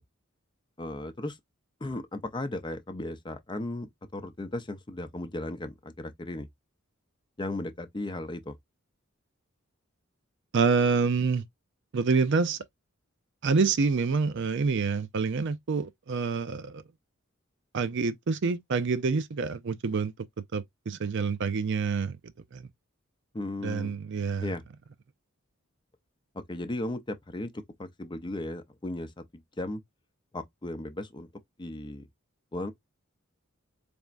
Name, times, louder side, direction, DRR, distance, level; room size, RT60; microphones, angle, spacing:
voice 1, 0.8-1.4 1.8-6.5 7.4-8.5 23.3-24.0 24.4-24.6 26.5-27.5 27.8-29.1 29.6-29.8 30.3-31.3 31.6-32.1 32.5-32.7, left 1 dB, 20° left, 0.6 m, -36 dB
voice 2, 10.5-11.4 11.9-12.6 13.4-16.8 17.7-20.1 20.5-22.2 22.5-22.7 23.6-24.5, right 4 dB, 60° right, 0.5 m, -27 dB
4.2 x 3.4 x 2.5 m
head